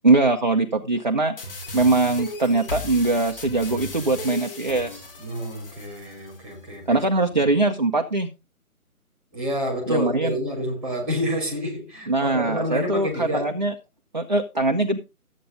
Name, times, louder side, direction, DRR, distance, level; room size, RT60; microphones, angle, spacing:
voice 1, 0.0-1.3 1.7-5.0 6.9-8.3 9.9-10.4 12.1-13.7 14.1-15.0, right 2 dB, 30° right, 0.8 m, -22 dB
sound 1, 1.4-6.4, left 2 dB, 35° left, 4.1 m, -36 dB
voice 2, 5.2-7.0 7.3-7.4 9.3-13.5, equal, ahead, 2.1 m, -28 dB
13.5 x 8.4 x 3.8 m
figure-of-eight pair, 155°, 45 cm